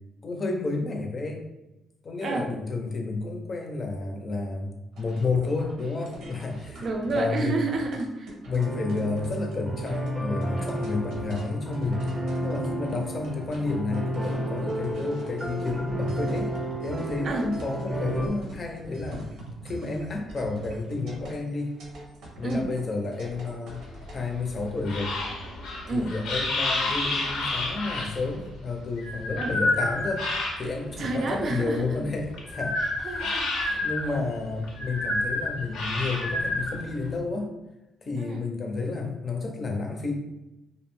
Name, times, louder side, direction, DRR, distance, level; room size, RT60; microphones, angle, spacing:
voice 1, 0.2-1.5 2.0-6.9 7.1-7.7 8.5-12.0 12.4-16.5 16.8-19.3 19.6-21.8 22.4-23.8 24.1-25.2 25.9-30.3 30.6-33.3 33.7-37.5 38.0-40.1, left 3 dB, 40° left, 2 dB, 0.5 m, -31 dB
voice 2, 2.2-2.5 6.8-8.4 17.2-17.5 22.4-22.7 25.9-26.1 29.4-29.6 31.0-32.0 32.8-34.2 38.2-38.4, right 3 dB, 55° right, 3 dB, 0.4 m, -30 dB
sound 1, 4.9-24.1, right 1 dB, 85° right, 0.8 m, -43 dB
sound 2, 8.6-18.3, equal, ahead, 0.7 m, -32 dB
sound 3, 23.7-30.9 31.3-37.2, left 2 dB, 85° left, 0.6 m, -29 dB
2.5 x 2.0 x 3.0 m, 0.96 s
cardioid pair, 90°, 0 cm